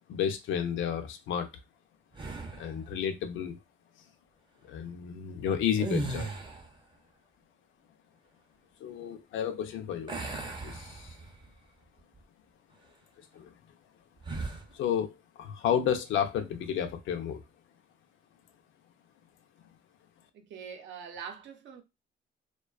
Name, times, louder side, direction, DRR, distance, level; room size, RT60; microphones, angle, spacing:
voice 1, 0.1-1.5 2.6-3.6 4.6-6.3 8.8-10.2 10.6-11.2 13.3-13.5 14.7-17.4, left 8 dB, 80° left, 0.5 m, -31 dB
sound 1, 2.1-2.8 5.7-6.8 10.1-11.5 12.0-12.2 14.2-14.7, right 3 dB, 25° right, 0.5 m, -37 dB
voice 2, 20.3-21.8, right 7 dB, 70° right, 0.6 m, -43 dB
2.4 x 2.2 x 2.3 m
cardioid pair, 90°, 20 cm